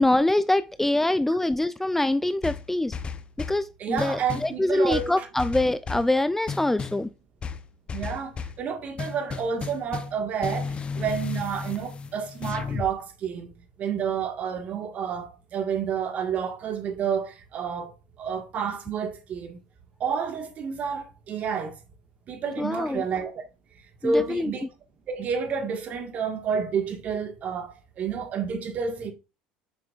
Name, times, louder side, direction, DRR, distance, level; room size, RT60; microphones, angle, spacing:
voice 1, 0.0-3.0 3.5-7.1 22.6-23.0 24.0-24.5, left 1 dB, 10° left, 0.4 m, -24 dB
sound 1, 2.4-3.6 4.0-4.6 4.9-6.1 6.5-7.0 7.4-8.6 9.0-10.2 10.4-12.9, left 5 dB, 35° left, 0.8 m, -34 dB
voice 2, 3.8-5.3 7.9-13.5 13.8-17.9 18.2-19.6 20.0-21.8 22.3-23.4 24.0-24.7 25.1-29.1, right 6 dB, 50° right, 1.7 m, -30 dB
7.0 x 6.0 x 2.5 m
hypercardioid pair, 80°, 3 cm